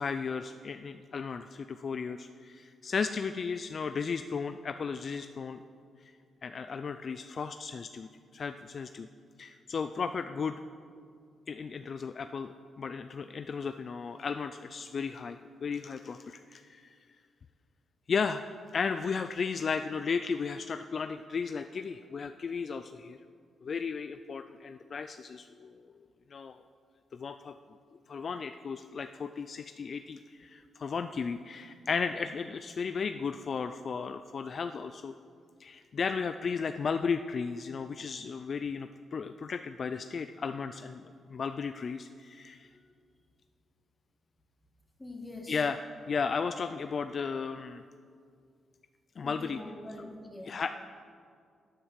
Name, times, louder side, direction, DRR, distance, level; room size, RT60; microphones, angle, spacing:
voice 1, 0.0-5.6 6.4-9.1 9.4-10.6 11.5-16.9 18.1-18.4 18.7-23.2 23.6-25.9 26.3-26.6 27.1-27.5 28.1-35.1 35.6-42.7 45.5-47.8 49.2-49.6 50.4-50.7, left 5 dB, 50° left, 9 dB, 0.4 m, -35 dB
voice 2, 45.0-45.6 49.2-50.6, left 1 dB, 15° left, 1 dB, 2.1 m, -44 dB
10.0 x 9.0 x 7.4 m, 2.2 s
cardioid pair, 80°, 0 cm